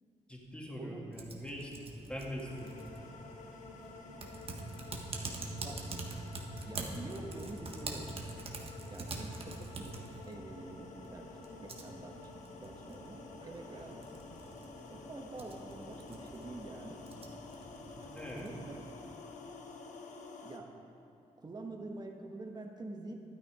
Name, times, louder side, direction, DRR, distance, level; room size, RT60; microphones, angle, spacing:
voice 1, 0.3-2.8 18.1-18.5, equal, 10° left, -3 dB, 2.5 m, -43 dB
Typing, 1.1-19.2, right 3 dB, 50° right, 1.4 m, -46 dB
sound 1, 2.4-20.6, left 4 dB, 80° left, 1.0 m, -50 dB
voice 2, 5.6-6.0 6.6-8.2 8.9-9.9 10.3-12.3 12.6-14.0 14.9-17.0 18.3-18.8 20.4-20.7 21.4-23.2, right 2 dB, 35° right, 2 dB, 1.4 m, -46 dB
12.0 x 9.1 x 5.0 m, 3.0 s
cardioid pair, 80°, 12 cm